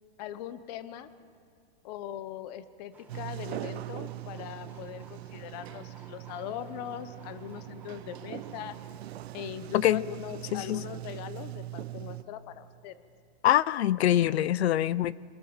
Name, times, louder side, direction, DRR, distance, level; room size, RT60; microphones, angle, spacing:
voice 1, 0.2-1.1 1.8-8.8 9.3-13.0, left 10 dB, 40° left, 14 dB, 1.0 m, -40 dB
sound 1, 2.9-8.9, right 4 dB, 5° right, 2.2 m, -57 dB
Sliding door, 3.1-12.2, right 15 dB, 75° right, 0.9 m, -41 dB
voice 2, 10.5-10.8 13.4-15.1, left 12 dB, 85° left, 21 dB, 0.7 m, -24 dB
27.0 x 18.0 x 7.3 m, 2.4 s
supercardioid pair, 160°, 31 cm